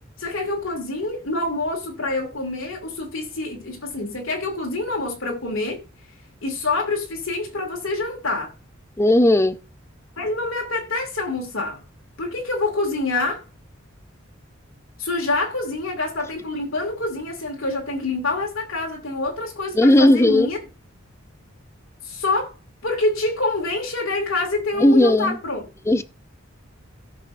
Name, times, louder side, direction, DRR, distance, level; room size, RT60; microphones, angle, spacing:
voice 1, 0.2-5.8 6.4-8.5 10.2-11.8 12.2-13.4 15.0-20.6 22.0-22.5 22.8-25.6, left 2 dB, 85° left, 2.4 m, -26 dB
voice 2, 9.0-9.6 19.8-20.5 24.8-25.4 25.9-26.0, left 1 dB, 15° left, 0.5 m, -16 dB
17.5 x 6.2 x 2.6 m
head